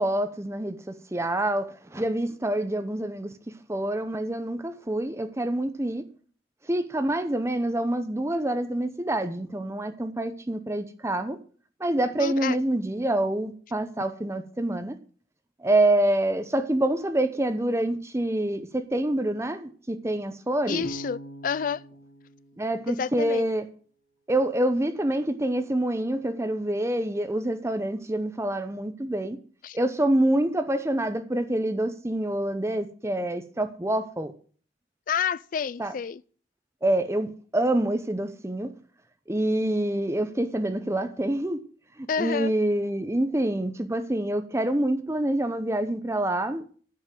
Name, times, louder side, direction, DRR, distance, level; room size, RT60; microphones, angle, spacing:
voice 1, 0.0-3.3 3.7-6.1 6.7-11.4 11.8-15.0 15.6-20.8 22.6-23.7 24.3-29.4 29.7-34.3 35.8-35.9 36.8-38.7 39.3-41.6 42.0-46.7, right 1 dB, 15° right, 0.7 m, -26 dB
voice 2, 12.2-12.6 20.7-21.8 22.9-23.4 29.6-29.8 35.1-36.2 42.1-42.5, left 7 dB, 50° left, 0.3 m, -29 dB
Bass guitar, 20.8-23.8, equal, 75° left, 2.3 m, -44 dB
9.5 x 5.3 x 7.5 m
head